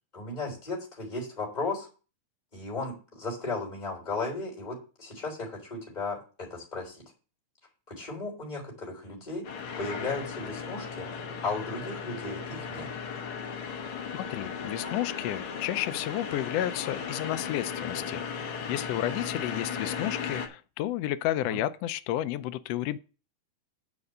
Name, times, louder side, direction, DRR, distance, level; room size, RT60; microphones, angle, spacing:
voice 1, 0.1-1.9 2.5-7.0 7.9-9.5 9.8-12.9 21.5-21.6, left 3 dB, 15° left, 3.3 m, -35 dB
sound 1, 9.4-20.5, left 6 dB, 55° left, 1.6 m, -36 dB
voice 2, 14.1-23.0, left 13 dB, 80° left, 1.5 m, -32 dB
8.2 x 4.9 x 6.5 m
omnidirectional pair, 3.4 m